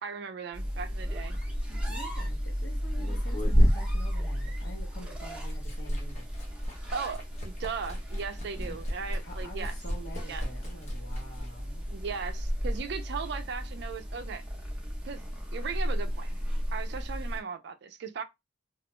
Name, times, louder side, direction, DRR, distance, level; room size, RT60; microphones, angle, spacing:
voice 1, 0.0-1.4 6.9-9.7 10.3-10.4 11.9-14.4 15.0-15.2 15.5-16.3 16.7-18.2, right 6 dB, 65° right, 0.4 m, -37 dB
sound 1, 0.5-17.4, equal, 5° right, 0.7 m, -35 dB
Liquid, 1.2-4.9 5.2-12.8, equal, 40° left, 0.9 m, -31 dB
voice 2, 1.3-6.3 9.2-11.9, equal, 65° left, 1.0 m, -47 dB
2.4 x 2.1 x 2.9 m
head